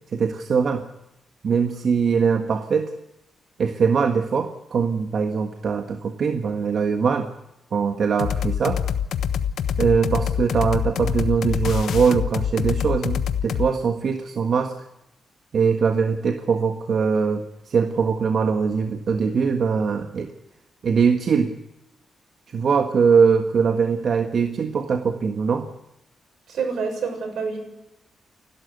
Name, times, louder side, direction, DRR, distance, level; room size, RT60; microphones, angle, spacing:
voice 1, 0.1-0.8 1.4-2.9 3.6-7.3 7.7-8.8 9.8-14.7 15.5-20.3 20.8-21.5 22.5-25.7, right 6 dB, 55° right, 5 dB, 1.6 m, -22 dB
sound 1, 8.2-13.7, left 8 dB, 85° left, 1.2 m, -25 dB
voice 2, 26.5-27.6, right 5 dB, 80° right, 4 dB, 7.0 m, -27 dB
29.5 x 12.5 x 8.0 m, 0.89 s
cardioid pair, 125°, 0 cm